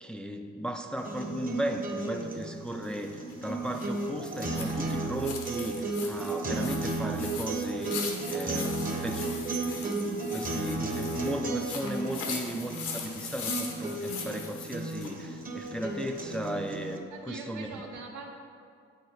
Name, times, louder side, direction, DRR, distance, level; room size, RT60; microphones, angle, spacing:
voice 1, 0.0-8.0 8.3-8.7 9.0-17.7, right 1 dB, 5° left, 5 dB, 0.3 m, -36 dB
sound 1, 1.0-17.0, right 2 dB, 30° right, 0.9 m, -34 dB
sound 2, 2.8-15.2, left 5 dB, 85° left, 1.0 m, -40 dB
voice 2, 17.1-18.4, right 4 dB, 90° right, 1 dB, 1.0 m, -43 dB
8.4 x 4.2 x 4.0 m, 2.4 s
cardioid pair, 90°, 30 cm